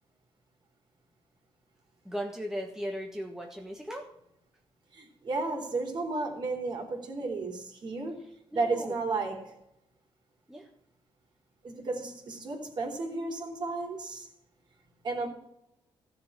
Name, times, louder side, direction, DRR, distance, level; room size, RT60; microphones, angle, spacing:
voice 1, 2.0-4.1 8.5-9.0 10.5-10.7, equal, 5° right, 1 dB, 1.5 m, -37 dB
voice 2, 4.9-8.2 8.5-9.6 11.6-14.3 15.0-15.3, right 3 dB, 45° right, 2 dB, 3.9 m, -33 dB
15.0 x 7.2 x 7.5 m, 0.81 s
cardioid pair, 125°, 10 cm